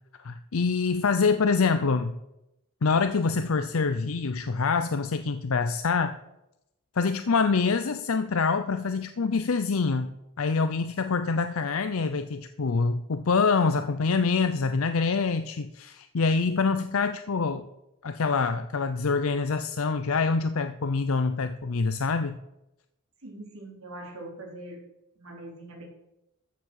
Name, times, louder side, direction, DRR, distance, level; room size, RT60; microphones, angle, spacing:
voice 1, 0.2-2.2 2.8-6.2 7.0-10.1 10.4-17.7 18.0-22.4, left 4 dB, 70° left, 9 dB, 0.6 m, -25 dB
voice 2, 23.2-24.8 25.2-25.8, right 1 dB, 70° right, -1 dB, 4.1 m, -42 dB
13.5 x 7.5 x 6.4 m, 0.89 s
head